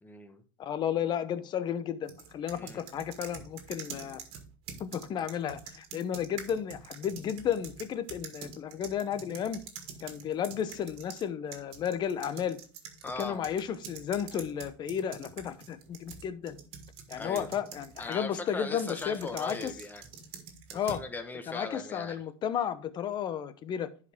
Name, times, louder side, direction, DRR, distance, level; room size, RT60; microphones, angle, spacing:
voice 1, 0.0-0.4 2.5-2.8 13.0-13.5 17.1-17.7 18.0-20.0 20.7-22.2, left 3 dB, 15° left, 1.2 m, -39 dB
voice 2, 0.6-4.2 4.8-9.6 10.0-12.6 13.2-16.6 17.1-19.7 20.7-21.0 21.5-24.1, left 9 dB, 40° left, 0.9 m, -33 dB
sound 1, 2.1-11.2 11.5-18.2 18.8-21.1, right 7 dB, 50° right, 2.0 m, -46 dB
11.0 x 4.9 x 3.6 m
supercardioid pair, 120°, 12 cm